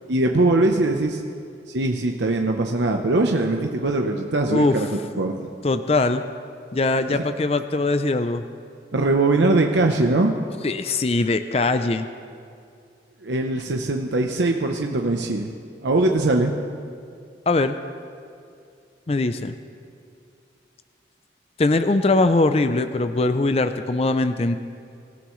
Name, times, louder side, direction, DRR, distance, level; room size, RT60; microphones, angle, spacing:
voice 1, 0.1-1.2 1.7-4.9 5.1-5.5 7.1-7.2 8.9-10.3 13.2-15.5 15.8-16.5, right 2 dB, 85° right, 3 dB, 0.8 m, -21 dB
voice 2, 4.5-4.8 5.6-6.2 6.7-8.4 10.6-12.1 17.5-17.8 19.1-19.5 21.6-24.6, left 2 dB, 35° left, 10 dB, 0.5 m, -21 dB
24.5 x 14.0 x 3.2 m, 2.3 s
head